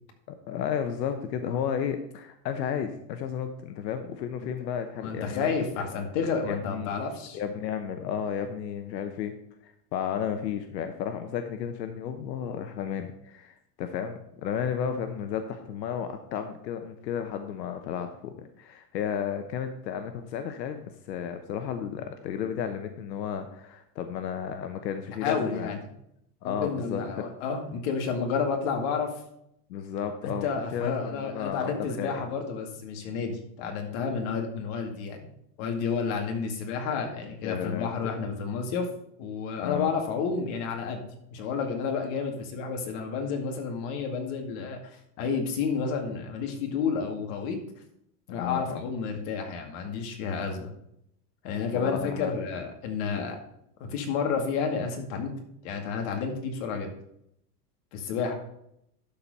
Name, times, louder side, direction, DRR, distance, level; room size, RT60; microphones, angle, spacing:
voice 1, 0.3-5.5 5.8-5.9 6.5-7.0 7.3-9.3 9.6-25.7 26.4-27.3 29.7-31.7 32.0-32.2 37.2-38.1 39.6-39.9 48.4-48.8 51.7-52.3, left 8 dB, 85° left, 8 dB, 1.0 m, -33 dB
voice 2, 5.0-7.4 25.2-25.9 26.4-29.1 30.4-35.3 35.6-38.9 39.2-41.0 41.3-47.6 48.3-50.7 51.4-53.4 53.8-55.3 55.6-56.9 57.9-58.3, left 5 dB, 50° left, 3 dB, 2.3 m, -30 dB
12.0 x 4.4 x 5.4 m, 0.76 s
supercardioid pair, 135°, 49 cm